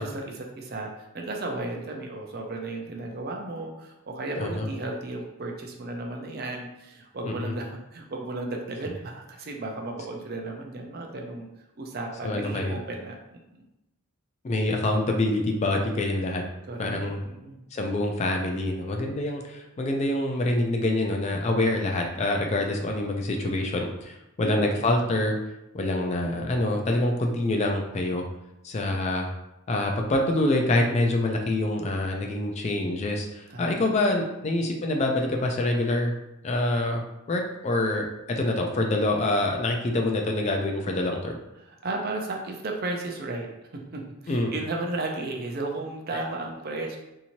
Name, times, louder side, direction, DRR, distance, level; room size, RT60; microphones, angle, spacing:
voice 1, 0.0-11.5 11.8-13.6 16.7-17.6 24.4-24.9 33.5-33.8 34.6-34.7 41.6-43.5 43.9-47.0, right 2 dB, 45° right, 1 dB, 0.5 m, -34 dB
voice 2, 4.4-4.7 7.2-7.5 12.2-12.8 14.4-16.4 16.8-17.2 17.7-25.4 25.7-28.2 28.6-29.3 29.7-36.1 36.4-41.3 44.3-44.5, left 1 dB, 30° left, 2 dB, 0.3 m, -26 dB
2.7 x 2.6 x 2.9 m, 0.91 s
head